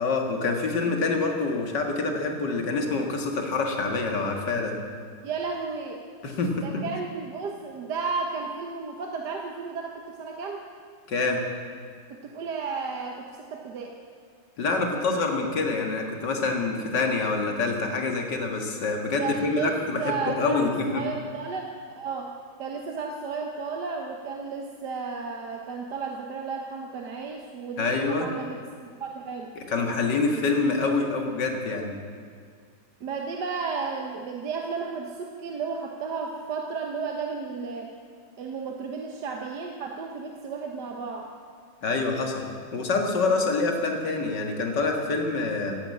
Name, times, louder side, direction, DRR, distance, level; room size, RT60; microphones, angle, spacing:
voice 1, 0.0-4.7 6.2-6.8 11.1-11.4 14.6-21.0 27.8-28.3 29.6-31.9 41.8-42.4 42.7-45.8, left 3 dB, 70° left, 2 dB, 2.5 m, -26 dB
voice 2, 5.2-6.0 6.6-10.7 12.1-13.9 19.2-21.7 22.0-22.3 22.6-28.6 29.0-29.5 33.0-37.9 38.4-41.3, right 5 dB, 65° right, 2 dB, 1.7 m, -33 dB
16.5 x 10.5 x 8.5 m, 2.1 s
omnidirectional pair, 2.0 m